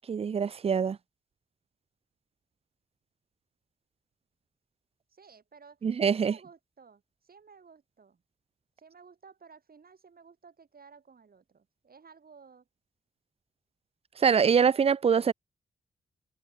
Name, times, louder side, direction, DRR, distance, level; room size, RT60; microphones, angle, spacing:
voice 1, 0.1-1.0 5.8-6.3 14.2-15.3, right 6 dB, 35° right, 0.4 m, -24 dB
voice 2, 5.1-8.2 8.8-12.7, right 5 dB, 55° right, 2.8 m, -55 dB
supercardioid pair, 45°, 18 cm